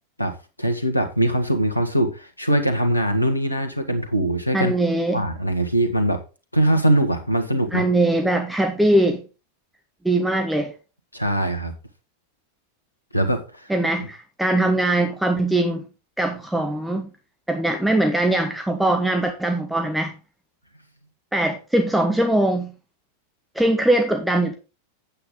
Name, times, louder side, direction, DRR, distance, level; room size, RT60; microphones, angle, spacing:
voice 1, 0.2-4.7 5.1-6.2 6.5-7.8 11.1-11.7 13.1-13.7, right 1 dB, 85° left, 6 dB, 1.7 m, -22 dB
voice 2, 4.5-5.2 7.7-9.2 10.0-10.7 13.7-15.8 16.2-17.1 17.5-20.1 21.3-22.7 23.5-24.5, right 1 dB, 5° right, 4 dB, 1.3 m, -21 dB
8.8 x 8.7 x 3.9 m, 0.32 s
figure-of-eight pair, 90°, 0 cm